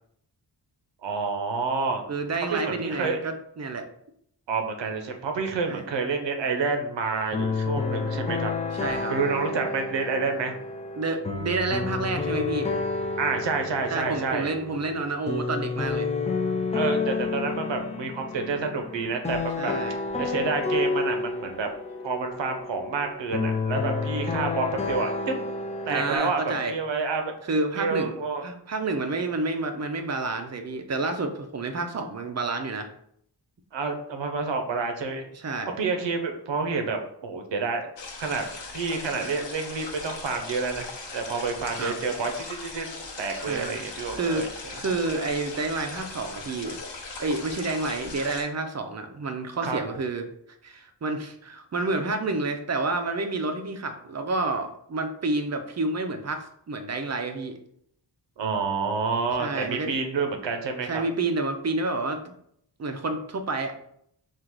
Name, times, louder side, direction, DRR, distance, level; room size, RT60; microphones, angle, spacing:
voice 1, 1.0-2.0 2.5-3.2 4.5-8.5 9.1-10.6 13.2-14.5 16.7-19.7 20.2-21.7 22.0-25.4 25.9-27.3 27.8-28.4 33.7-35.2 35.8-37.9 38.2-38.4 38.7-40.9 41.1-42.9 43.2-44.7 49.6-49.8 58.4-61.0, right 4 dB, 85° right, 5 dB, 0.8 m, -28 dB
voice 2, 2.1-3.9 5.7-5.8 8.1-8.3 8.7-9.1 11.0-12.7 13.9-16.1 19.6-20.0 25.9-26.7 27.5-28.1 28.4-32.9 35.3-35.8 41.8-42.0 43.5-43.8 44.2-44.5 44.8-46.8 47.2-50.2 50.6-57.6 59.4-59.9 60.9-62.3 62.8-63.8, right 3 dB, 40° right, 6 dB, 0.5 m, -29 dB
sound 1, 7.3-26.2, left 4 dB, 15° left, 0.4 m, -30 dB
sound 2, 38.0-48.4, left 3 dB, 85° left, 0.9 m, -39 dB
3.8 x 2.4 x 4.5 m, 0.70 s
wide cardioid pair, 125°, 42 cm